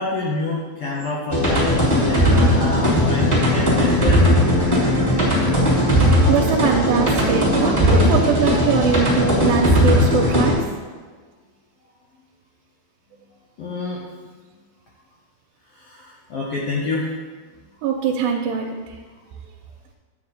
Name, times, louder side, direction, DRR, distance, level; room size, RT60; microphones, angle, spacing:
voice 1, 0.0-4.2 13.6-14.0 15.7-17.1, left 3 dB, 85° left, -3 dB, 1.3 m, -27 dB
sound 1, 1.3-10.5, equal, 5° left, 2.3 m, -17 dB
voice 2, 5.9-10.6 17.8-18.7, right 6 dB, 80° right, 0 dB, 2.4 m, -22 dB
9.6 x 7.6 x 4.2 m, 1.4 s
omnidirectional pair, 4.1 m